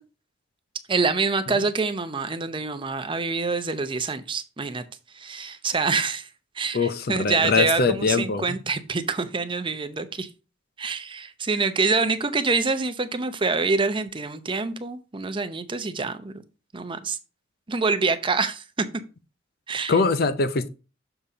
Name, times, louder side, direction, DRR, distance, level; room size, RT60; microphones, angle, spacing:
voice 1, 0.9-4.8 5.1-6.3 6.6-10.3 10.8-16.3 16.7-17.2 17.7-18.9 19.7-19.9, right 4 dB, 30° right, 0.7 m, -26 dB
voice 2, 6.7-8.6 19.9-20.7, left 4 dB, 55° left, 0.6 m, -23 dB
6.8 x 4.2 x 4.9 m
head